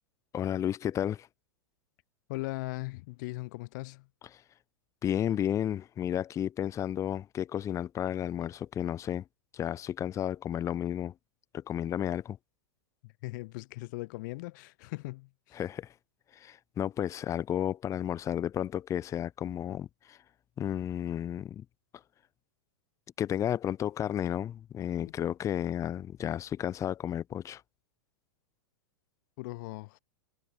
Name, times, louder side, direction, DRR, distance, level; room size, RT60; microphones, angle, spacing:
voice 1, 0.3-1.3 5.0-9.2 9.5-11.1 11.5-12.4 15.6-15.9 16.3-20.2 20.6-21.6 23.2-27.6, left 10 dB, 25° left, 0.8 m, -32 dB
voice 2, 2.3-4.1 13.0-15.6 25.0-25.1 29.4-30.0, left 23 dB, 55° left, 0.8 m, -39 dB
hypercardioid pair, 105°, 12 cm